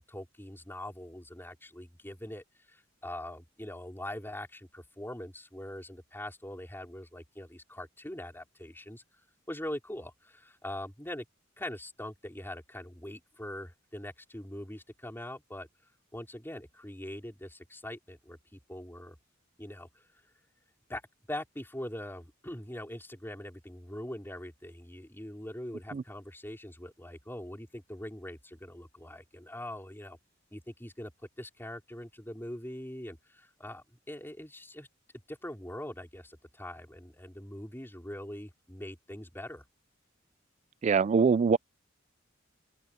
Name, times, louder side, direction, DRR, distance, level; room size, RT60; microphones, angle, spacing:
voice 1, 0.0-9.0 9.5-11.3 11.6-15.7 16.1-19.1 19.6-20.1 20.9-21.0 21.3-30.2 30.5-31.1 31.4-34.9 35.3-39.6, left 1 dB, 10° left, 4.8 m, -42 dB
voice 2, 40.8-41.6, right 5 dB, 35° right, 0.3 m, -23 dB
head